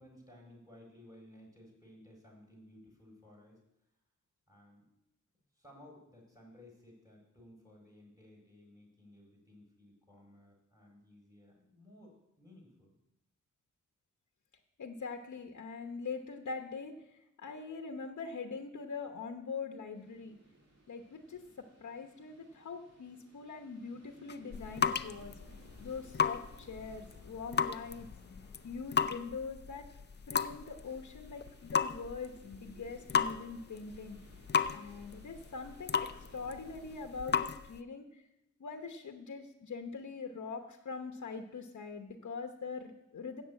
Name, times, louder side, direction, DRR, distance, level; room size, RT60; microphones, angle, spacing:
voice 1, 0.0-3.6 4.5-4.9 5.5-13.0, left 1 dB, 10° right, -2 dB, 4.5 m, -57 dB
voice 2, 14.8-20.4 20.9-25.4 25.8-28.1 28.6-29.8 30.3-34.2 34.7-38.2 38.6-43.4, left 4 dB, 65° left, 4 dB, 0.9 m, -43 dB
sound 1, 19.9-37.3, right 1 dB, 55° right, 2.6 m, -62 dB
sound 2, 24.3-37.8, left 6 dB, 35° left, 0.4 m, -35 dB
7.4 x 6.9 x 8.3 m, 0.83 s
cardioid pair, 65°, 30 cm